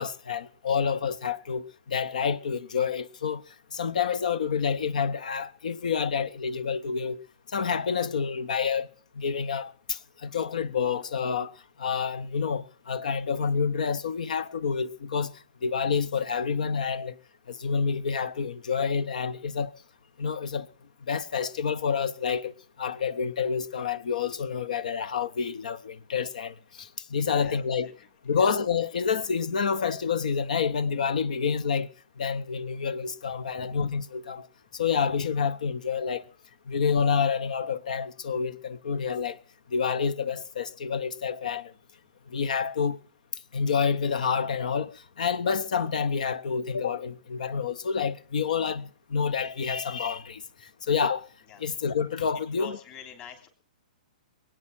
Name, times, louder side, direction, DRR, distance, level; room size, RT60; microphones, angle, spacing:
voice 1, 0.0-7.2 7.5-17.2 17.5-19.8 20.2-20.7 21.1-27.9 28.2-34.5 34.7-36.3 36.7-39.4 39.7-41.7 42.3-43.0 43.5-51.3 51.6-52.8, left 6 dB, 70° left, 0.9 m, -28 dB
voice 2, 27.4-28.1 28.4-28.5 33.5-33.8 51.5-51.6 52.3-53.5, left 8 dB, 35° left, 3.2 m, -46 dB
21.5 x 9.1 x 6.0 m
hypercardioid pair, 115°, 4 cm